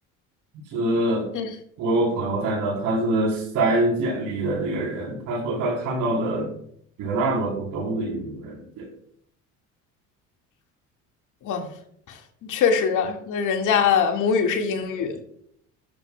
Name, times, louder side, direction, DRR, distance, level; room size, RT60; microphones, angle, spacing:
voice 1, 0.7-1.3 1.8-6.5 7.0-8.9, right 2 dB, 75° right, 4.1 m, -25 dB
voice 2, 12.5-15.2, left 6 dB, 70° left, 2.1 m, -22 dB
13.5 x 12.5 x 2.3 m
supercardioid pair, 80°, 32 cm